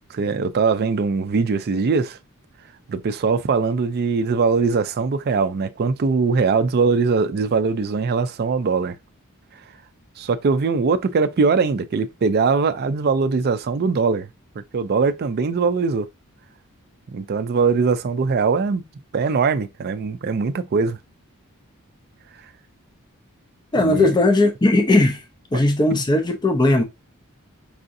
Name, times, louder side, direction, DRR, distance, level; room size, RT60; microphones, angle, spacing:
voice 1, 0.1-2.2 2.9-9.0 10.2-14.3 14.7-16.1 17.1-18.8 19.1-21.0 23.8-24.1, right 4 dB, 45° right, 0.4 m, -21 dB
voice 2, 23.7-25.2 25.5-26.8, left 2 dB, 20° left, 0.5 m, -17 dB
4.8 x 2.6 x 2.6 m
head